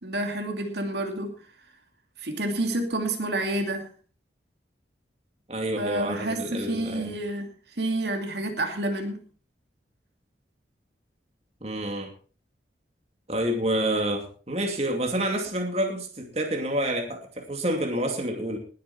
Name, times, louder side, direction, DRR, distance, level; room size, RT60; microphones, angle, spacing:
voice 1, 0.0-1.3 2.2-3.9 5.8-7.5 7.8-9.2, right 1 dB, 70° right, 4 dB, 2.6 m, -29 dB
voice 2, 5.5-7.2 11.6-12.1 13.3-18.6, right 1 dB, 35° right, 3 dB, 2.5 m, -28 dB
20.0 x 9.3 x 4.4 m, 0.40 s
head